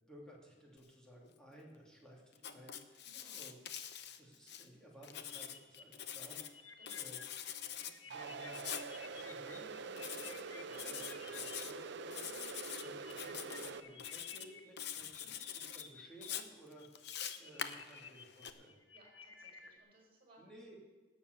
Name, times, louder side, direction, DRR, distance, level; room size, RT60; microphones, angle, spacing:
voice 1, 0.1-3.6 4.2-7.2 7.8-12.3 12.8-15.3 15.7-16.9 17.4-18.8 20.4-20.7, right 1 dB, 5° left, -3 dB, 2.8 m, -57 dB
Writing, 2.4-4.7 5.0-6.5 6.9-7.9 8.5-8.9 10.0-10.4 10.7-11.7 12.1-12.8 13.1-13.7 14.0-14.5 14.8-15.8 16.2-18.5, left 9 dB, 60° left, 0.8 m, -45 dB
voice 2, 3.0-3.4 6.8-7.1 10.6-11.0 12.2-12.6 14.9-15.6 17.5-17.7 18.9-20.4, right 2 dB, 30° right, -2 dB, 4.6 m, -65 dB
sound 1, 5.3-11.6 12.3-16.3 16.6-19.8, left 6 dB, 80° left, 1.2 m, -55 dB
sound 2, 8.1-13.8, right 4 dB, 65° right, 0.6 m, -45 dB
18.0 x 7.1 x 6.7 m, 1.2 s
head